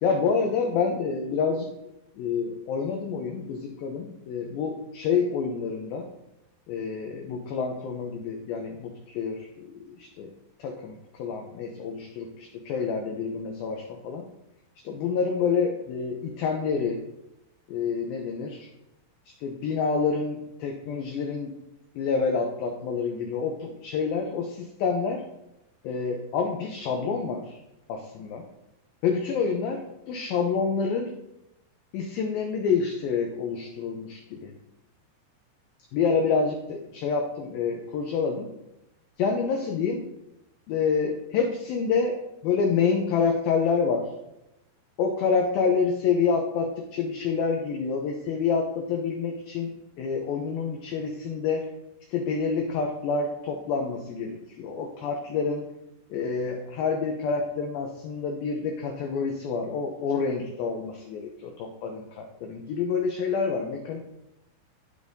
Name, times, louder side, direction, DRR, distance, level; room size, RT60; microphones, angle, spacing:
voice 1, 0.0-1.7 2.2-6.1 6.7-10.3 10.6-14.3 14.8-17.0 17.7-18.7 19.4-21.5 22.0-25.2 25.8-27.6 27.9-28.5 29.0-31.1 31.9-34.5 35.9-38.5 39.2-40.0 40.7-42.2 42.4-44.1 45.0-49.7 50.0-51.7 52.1-55.7 56.1-64.0, left 5 dB, 85° left, 2 dB, 2.0 m, -28 dB
12.5 x 5.0 x 2.7 m, 0.89 s
omnidirectional pair, 5.0 m